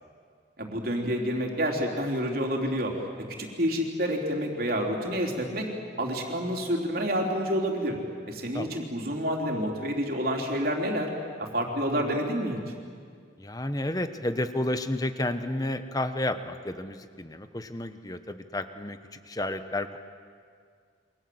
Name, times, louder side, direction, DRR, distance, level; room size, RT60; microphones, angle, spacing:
voice 1, 0.6-2.9 3.4-5.7 6.0-8.0 8.3-11.1 11.4-12.6, equal, 50° right, 1 dB, 3.9 m, -28 dB
voice 2, 13.4-20.0, left 1 dB, 20° left, 9 dB, 1.1 m, -31 dB
28.5 x 25.0 x 8.0 m, 2.1 s
head